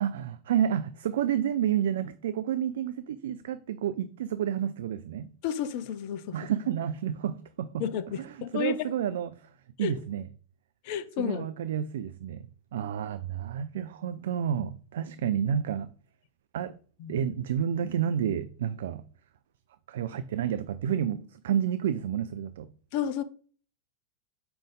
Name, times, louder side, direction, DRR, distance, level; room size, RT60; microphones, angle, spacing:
voice 1, 0.0-5.3 6.3-7.9 8.2-9.5 9.8-10.3 11.2-12.4 12.7-15.9 16.5-16.8 17.1-19.0 19.9-22.7, right 9 dB, 60° right, 0.4 m, -30 dB
voice 2, 5.4-6.4 7.8-8.8 9.8-9.9 10.8-11.5 17.0-17.3 22.9-23.2, left 9 dB, 45° left, 0.6 m, -31 dB
6.9 x 5.1 x 3.7 m
figure-of-eight pair, 90°, 0 cm